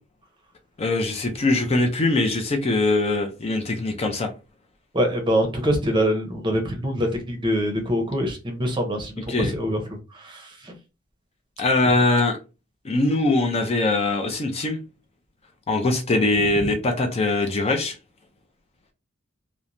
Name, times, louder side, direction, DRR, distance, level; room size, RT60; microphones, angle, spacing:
voice 1, 0.8-4.3 9.3-9.5 11.6-12.4 12.8-14.8 15.7-18.0, left 2 dB, 30° left, 0.5 m, -22 dB
voice 2, 4.9-10.7 16.4-16.6, equal, 25° right, 0.7 m, -25 dB
3.0 x 2.1 x 2.5 m
head